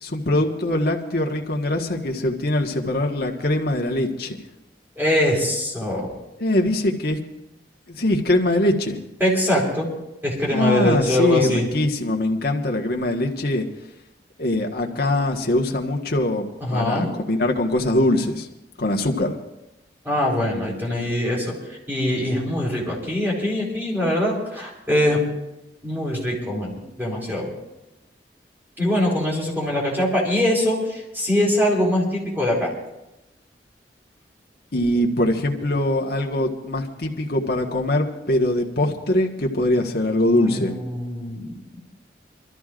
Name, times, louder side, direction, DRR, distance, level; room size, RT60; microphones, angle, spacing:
voice 1, 0.0-4.4 6.4-7.2 7.9-9.0 10.5-13.6 14.4-18.5 18.8-19.4 34.7-40.7, left 1 dB, 60° left, 2 dB, 1.5 m, -22 dB
voice 2, 5.0-6.1 9.2-9.9 10.2-11.7 16.6-17.1 20.0-21.5 21.9-25.2 25.8-27.5 28.8-32.7 40.3-41.8, left 1 dB, 10° right, -3 dB, 4.2 m, -23 dB
25.5 x 13.5 x 2.5 m, 0.93 s
head